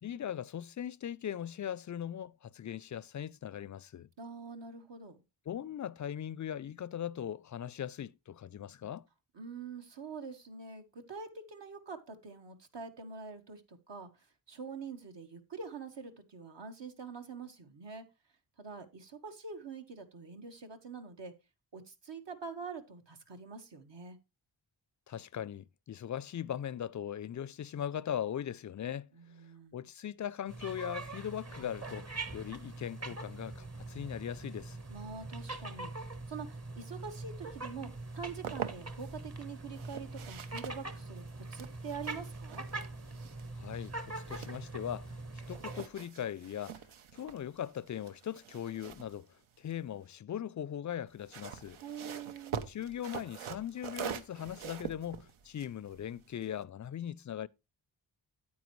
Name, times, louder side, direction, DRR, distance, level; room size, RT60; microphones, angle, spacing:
voice 1, 0.0-4.1 5.5-9.1 25.1-29.1 29.7-34.8 43.6-45.1 45.5-46.8 47.1-49.3 49.6-51.8 52.7-57.5, left 10 dB, 40° left, 0.4 m, -39 dB
voice 2, 4.2-5.2 9.3-18.0 18.6-21.3 21.7-24.2 29.1-29.7 34.9-42.6 51.8-52.6, right 5 dB, 60° right, 1.5 m, -45 dB
sound 1, 30.5-45.8, right 2 dB, 30° right, 1.2 m, -43 dB
sound 2, 38.0-39.2 39.7-45.1 45.4-50.1 51.1-56.6, right 8 dB, 85° right, 0.9 m, -45 dB
9.4 x 8.5 x 3.1 m
cardioid pair, 55°, 48 cm